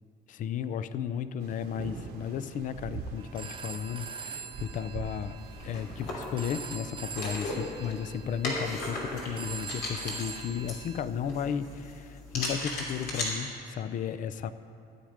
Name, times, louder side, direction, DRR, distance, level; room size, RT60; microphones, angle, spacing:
voice 1, 0.3-5.4 5.6-14.5, left 8 dB, 50° left, 14 dB, 0.5 m, -34 dB
sound 1, 1.4-7.8, right 5 dB, 70° right, 1.1 m, -44 dB
Telephone, 3.2-11.0, right 5 dB, 30° right, 0.8 m, -43 dB
sound 2, 5.4-13.3, left 2 dB, 85° left, 3.0 m, -37 dB
15.0 x 8.8 x 5.0 m, 2.6 s
cardioid pair, 110°, 17 cm